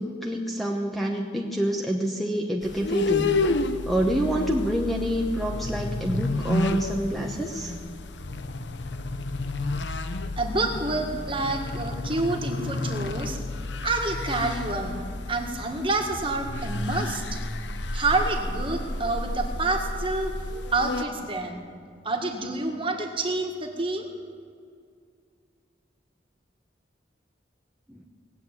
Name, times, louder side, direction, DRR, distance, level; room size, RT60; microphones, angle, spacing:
voice 1, 0.0-3.4 3.8-7.7 27.9-28.1, equal, ahead, 0 dB, 1.0 m, -27 dB
sound 1, 2.6-21.0, left 2 dB, 70° left, 0.8 m, -31 dB
voice 2, 10.4-13.4 13.8-15.0 15.3-17.4 17.9-20.3 20.7-21.6 22.0-24.1, right 2 dB, 30° right, 2 dB, 1.8 m, -28 dB
19.0 x 8.2 x 9.1 m, 2.3 s
head